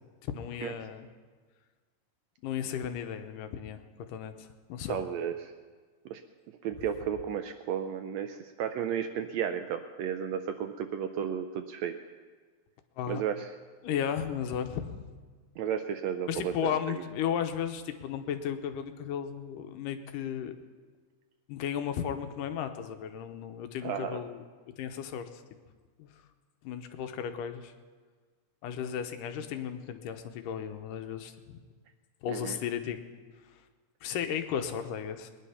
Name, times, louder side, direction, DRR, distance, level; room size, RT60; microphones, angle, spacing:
voice 1, 0.2-1.1 2.4-3.8 4.1-5.0 13.0-13.2 13.8-15.0 16.3-20.5 21.5-24.4 24.8-25.4 26.0-26.1 26.6-27.7 28.6-31.6 32.2-33.0 34.0-35.3, left 8 dB, 85° left, 7 dB, 2.5 m, -34 dB
voice 2, 4.9-5.5 6.1-6.2 6.6-11.9 13.1-13.5 15.6-16.8 23.8-24.2 32.3-32.6, right 8 dB, 85° right, 7 dB, 1.5 m, -33 dB
20.5 x 10.5 x 5.7 m, 1.5 s
omnidirectional pair, 3.7 m